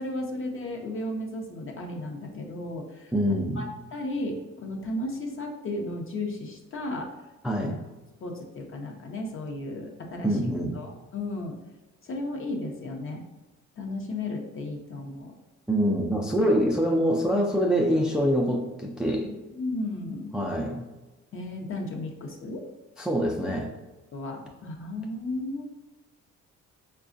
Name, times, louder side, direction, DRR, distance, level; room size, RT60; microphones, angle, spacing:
voice 1, 0.0-7.1 7.6-7.7 8.2-10.4 10.7-11.5 12.0-13.2 13.8-15.3 19.5-20.3 21.3-22.7 24.1-25.6, left 2 dB, 45° left, 2 dB, 0.7 m, -34 dB
voice 2, 3.1-3.6 7.4-7.8 10.2-10.8 15.7-19.3 20.3-20.9 23.0-23.7, equal, 5° right, 0 dB, 0.3 m, -25 dB
4.7 x 2.3 x 2.5 m, 1.1 s
cardioid pair, 90°, 30 cm